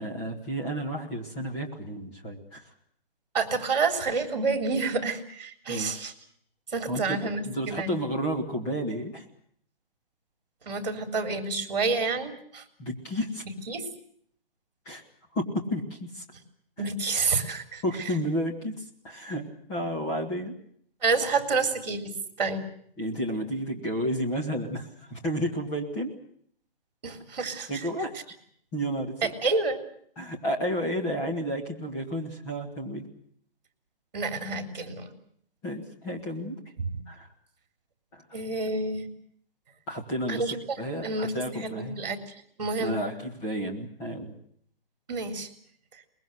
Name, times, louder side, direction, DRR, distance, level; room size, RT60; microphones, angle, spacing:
voice 1, 0.0-2.6 5.7-6.0 6.9-7.2 7.5-9.2 12.8-13.4 14.9-15.0 15.3-16.2 16.8-16.9 17.8-19.4 19.7-20.6 23.0-26.1 27.7-28.1 28.7-29.3 30.2-33.1 35.6-36.6 37.1-37.3 38.1-38.4 39.9-42.0 42.8-44.3, equal, 10° left, 0 dB, 1.8 m, -31 dB
voice 2, 3.3-6.1 6.7-8.0 10.6-12.6 13.7-13.9 16.8-17.8 21.0-22.6 27.0-27.7 29.2-29.8 34.1-35.1 36.8-37.0 38.3-39.1 40.3-40.6 41.0-42.2 42.6-43.0 45.1-45.5, right 4 dB, 45° right, 7 dB, 3.7 m, -29 dB
23.0 x 21.5 x 7.9 m, 0.64 s
hypercardioid pair, 175°, 29 cm